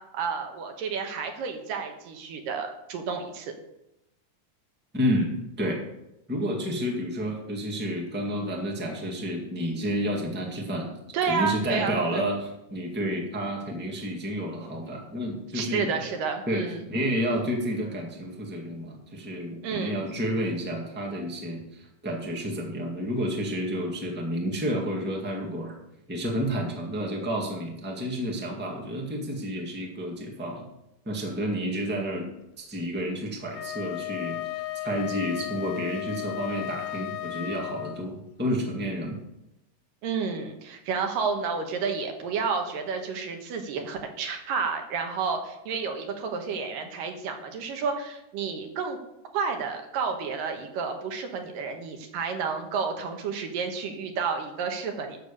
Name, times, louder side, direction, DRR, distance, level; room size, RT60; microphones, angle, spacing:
voice 1, 0.0-3.5 11.1-12.3 15.5-16.9 19.6-20.1 40.0-49.0 49.3-55.2, right 5 dB, 85° right, 4 dB, 3.0 m, -30 dB
voice 2, 4.9-5.8 6.3-10.9 11.2-15.9 16.5-25.8 26.1-30.7 31.0-32.3 32.6-39.2, equal, 5° right, 0 dB, 1.2 m, -30 dB
Wind instrument woodwind instrument, 33.5-38.1, left 14 dB, 85° left, 2.2 m, -35 dB
11.0 x 6.8 x 6.9 m, 0.88 s
omnidirectional pair, 3.8 m